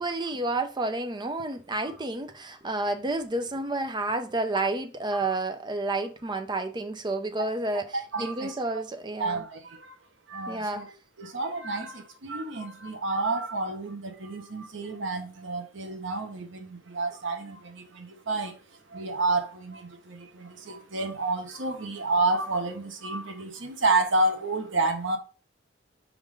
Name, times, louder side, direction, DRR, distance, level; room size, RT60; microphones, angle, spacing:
voice 1, 0.0-7.8 8.2-9.4 10.5-10.8, right 2 dB, 25° right, 0.6 m, -30 dB
voice 2, 7.9-8.6 9.2-9.9 10.3-10.9 11.2-25.2, right 2 dB, 70° right, 1.1 m, -30 dB
5.1 x 3.8 x 4.8 m
head